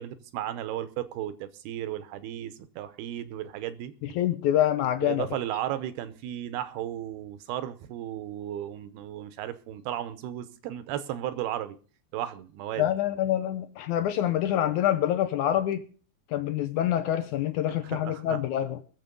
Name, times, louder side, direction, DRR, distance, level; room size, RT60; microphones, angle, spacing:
voice 1, 0.0-3.9 5.0-11.8 12.1-12.9 17.7-18.4, right 12 dB, 85° right, 13 dB, 2.9 m, -35 dB
voice 2, 4.2-5.3 12.8-15.8 16.3-18.8, left 11 dB, 75° left, 10 dB, 1.8 m, -26 dB
21.5 x 7.3 x 5.3 m, 0.41 s
omnidirectional pair, 4.4 m